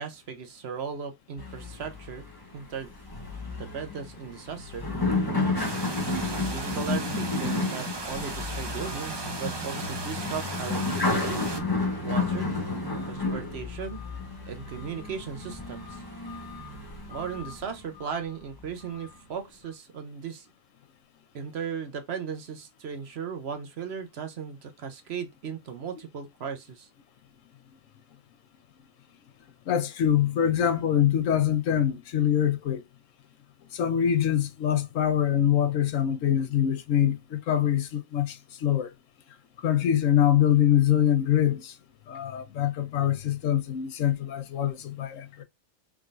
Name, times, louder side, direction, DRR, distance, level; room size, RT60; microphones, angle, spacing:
voice 1, 0.0-2.3 2.5-2.9 3.6-4.8 6.3-11.4 12.0-12.5 13.1-14.0 14.5-16.0 17.1-20.5 21.3-26.9, right 6 dB, 60° right, 0.9 m, -37 dB
sound 1, 1.4-18.1 18.6-19.1, left 3 dB, 20° left, 1.1 m, -32 dB
sound 2, 5.6-11.6, right 3 dB, 25° right, 0.6 m, -37 dB
voice 2, 29.7-32.8 33.7-38.9 39.6-41.7 42.1-45.4, left 10 dB, 80° left, 1.1 m, -24 dB
3.8 x 3.7 x 2.4 m
omnidirectional pair, 1.3 m